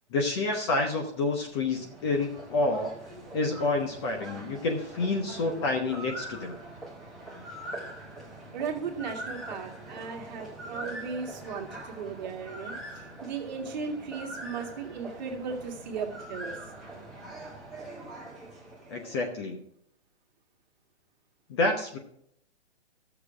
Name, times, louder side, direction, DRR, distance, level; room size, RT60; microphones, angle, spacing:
voice 1, 0.1-6.6 18.9-19.6 21.5-22.0, left 2 dB, 25° left, 4 dB, 0.8 m, -29 dB
sound 1, 1.2-19.5, right 1 dB, ahead, 1.1 m, -43 dB
voice 2, 8.5-16.6, right 5 dB, 40° right, 2 dB, 1.9 m, -36 dB
12.0 x 6.9 x 4.8 m, 0.70 s
hypercardioid pair, 160°, 34 cm